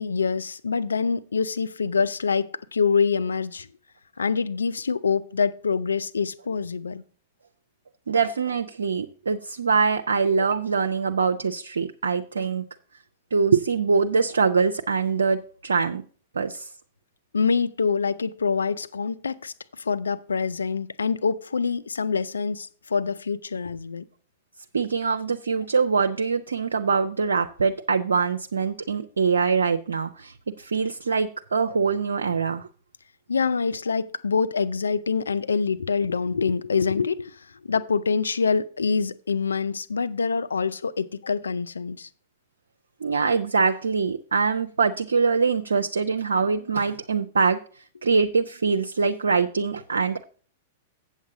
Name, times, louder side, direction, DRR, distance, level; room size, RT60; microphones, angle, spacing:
voice 1, 0.0-3.7 4.2-7.0 17.3-24.1 33.3-42.1, left 5 dB, 85° left, 0.4 m, -25 dB
voice 2, 8.1-12.6 13.3-16.0 16.3-16.7 24.7-32.7 43.0-47.6 48.0-50.2, right 5 dB, 80° right, 0.5 m, -23 dB
8.2 x 7.3 x 4.8 m
hypercardioid pair, 105°, 0 cm